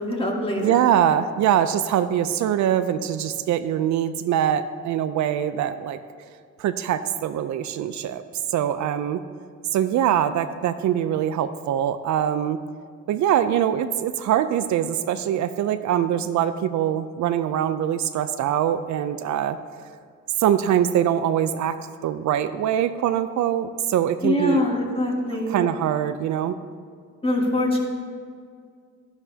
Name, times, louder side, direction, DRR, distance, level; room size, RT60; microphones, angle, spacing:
voice 1, 0.0-0.8 24.2-25.6 27.2-27.8, left 1 dB, 20° left, -1 dB, 1.9 m, -23 dB
voice 2, 0.6-6.0 6.6-8.2 8.5-9.2 9.7-12.6 13.1-19.6 20.4-21.8 22.0-24.6 25.5-26.6, right 10 dB, 70° right, 11 dB, 0.5 m, -23 dB
12.0 x 11.0 x 2.8 m, 2.1 s
cardioid pair, 90°, 30 cm